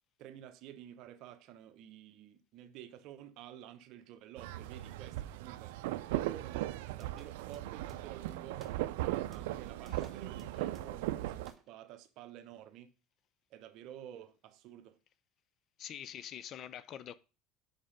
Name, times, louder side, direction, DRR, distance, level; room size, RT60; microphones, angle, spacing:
voice 1, 0.2-5.7 6.2-8.6 8.9-12.9 13.5-15.0, right 11 dB, 60° right, 0.8 m, -51 dB
sound 1, 4.4-11.5, right 15 dB, 85° right, 0.4 m, -38 dB
sound 2, 7.0-8.3 8.6-9.0 9.3-11.1 11.5-11.7, right 3 dB, 25° right, 0.9 m, -57 dB
voice 2, 15.8-17.2, left 10 dB, 45° left, 0.5 m, -45 dB
5.4 x 4.9 x 5.1 m
supercardioid pair, 115°, 0 cm